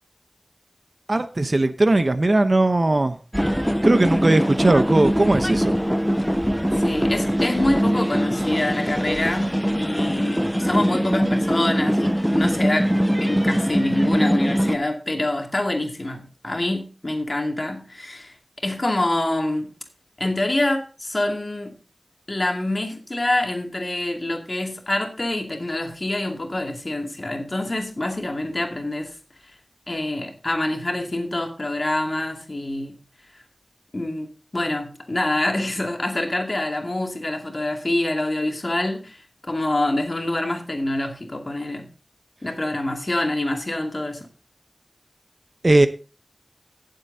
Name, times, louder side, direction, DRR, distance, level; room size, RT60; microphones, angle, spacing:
voice 1, 1.1-3.2 3.8-5.8 45.6-45.9, right 2 dB, 50° right, 0.9 m, -18 dB
sound 1, 3.3-14.8, equal, ahead, 0.5 m, -22 dB
voice 2, 6.7-18.3 18.6-19.7 20.2-21.7 22.3-29.1 29.9-33.0 33.9-34.3 34.5-41.9 42.4-44.3, left 1 dB, 45° left, 2.4 m, -26 dB
17.0 x 7.7 x 2.8 m
wide cardioid pair, 60°, 0 cm